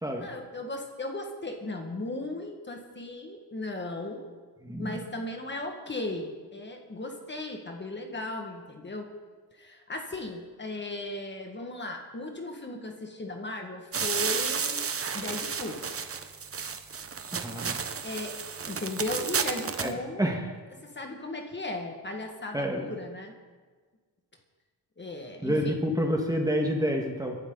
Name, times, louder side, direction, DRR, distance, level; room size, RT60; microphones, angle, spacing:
voice 1, 0.2-4.3 4.8-9.1 9.6-14.9 15.1-15.8 18.0-18.4 18.7-20.3 20.8-23.4 25.0-25.8, left 2 dB, 25° left, 3 dB, 1.9 m, -36 dB
voice 2, 4.6-5.0 17.3-17.8 19.8-20.5 22.5-22.9 25.4-27.4, equal, 10° right, 2 dB, 1.8 m, -28 dB
sound 1, 13.9-19.9, right 6 dB, 35° right, 1.0 m, -32 dB
23.0 x 12.0 x 4.0 m, 1.5 s
cardioid pair, 115°, 41 cm